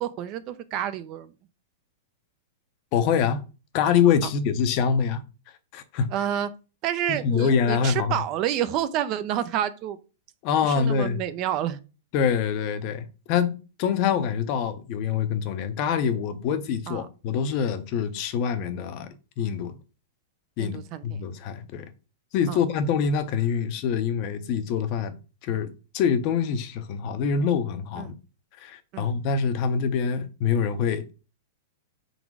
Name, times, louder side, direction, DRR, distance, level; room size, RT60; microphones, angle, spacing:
voice 1, 0.0-1.3 6.1-6.5 6.8-10.0 10.6-11.8 16.9-17.1 20.6-21.2 22.5-22.6 28.0-28.1 28.9-29.1, right 11 dB, 30° right, 0.5 m, -29 dB
voice 2, 2.9-3.4 3.7-5.2 5.7-6.1 7.1-8.1 10.4-11.2 12.1-19.1 19.4-19.7 20.6-21.9 22.3-25.1 25.4-28.1 28.6-31.1, left 7 dB, 35° left, 0.8 m, -25 dB
5.0 x 4.0 x 4.7 m
supercardioid pair, 160°, 0 cm